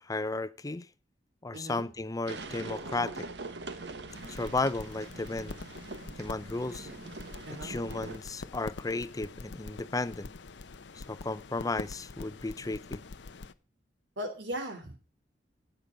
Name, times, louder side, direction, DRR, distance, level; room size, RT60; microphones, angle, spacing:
voice 1, 0.0-0.9 1.4-3.3 4.3-5.6 6.2-6.9 7.6-10.3 10.9-13.0, left 3 dB, 20° left, 0.6 m, -34 dB
voice 2, 1.5-1.9 7.5-7.8 14.2-15.0, equal, 90° right, 3.6 m, -38 dB
sound 1, 2.3-8.2, right 3 dB, 70° right, 1.3 m, -43 dB
sound 2, 4.1-13.5, left 3 dB, 80° left, 0.7 m, -45 dB
16.0 x 9.1 x 5.2 m
head